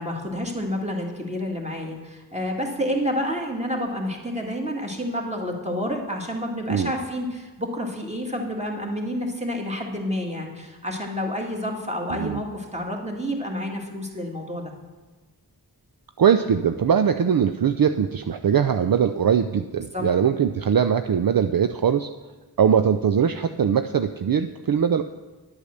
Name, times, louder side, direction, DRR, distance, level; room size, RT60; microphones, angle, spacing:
voice 1, 0.0-14.7 19.9-20.0, equal, 15° right, 0 dB, 2.0 m, -29 dB
voice 2, 16.2-22.1 22.6-25.0, right 7 dB, 60° right, 9 dB, 0.5 m, -21 dB
9.8 x 8.5 x 6.5 m, 1.2 s
wide cardioid pair, 45°, 40 cm